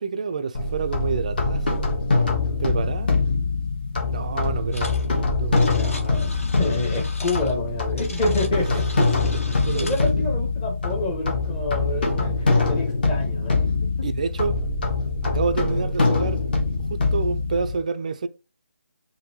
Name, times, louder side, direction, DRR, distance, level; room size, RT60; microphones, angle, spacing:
voice 1, 0.0-1.8 2.6-3.1 4.1-4.9 5.4-5.6 9.0-10.3 14.0-14.6 15.2-16.4 16.9-18.3, right 5 dB, 30° right, 0.3 m, -28 dB
sound 1, 0.5-17.8, left 3 dB, 40° left, 1.3 m, -23 dB
sound 2, 4.7-5.1 5.3-10.1, left 2 dB, 70° left, 1.8 m, -39 dB
voice 2, 5.7-6.3 6.6-8.9 9.8-13.6, left 2 dB, 15° left, 1.0 m, -28 dB
5.2 x 2.6 x 2.9 m
figure-of-eight pair, 170°, 8 cm